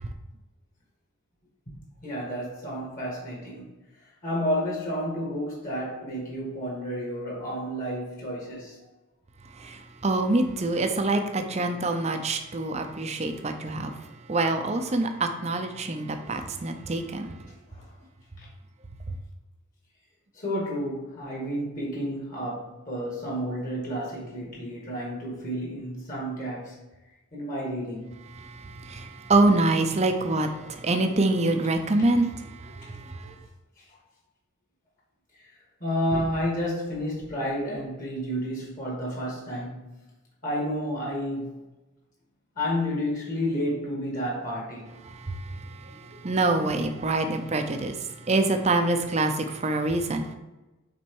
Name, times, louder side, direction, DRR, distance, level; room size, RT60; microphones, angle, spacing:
voice 1, 2.0-3.7 4.2-8.8 17.7-17.8 18.4-18.5 20.4-26.8 27.3-28.1 35.8-39.8 40.4-41.5 42.6-44.9, equal, 40° left, -4 dB, 1.9 m, -31 dB
voice 2, 9.6-13.9 14.3-17.3 28.4-33.3 45.0-45.4 45.8-50.3, right 2 dB, 30° right, 6 dB, 0.6 m, -26 dB
6.1 x 4.3 x 4.6 m, 1.1 s
head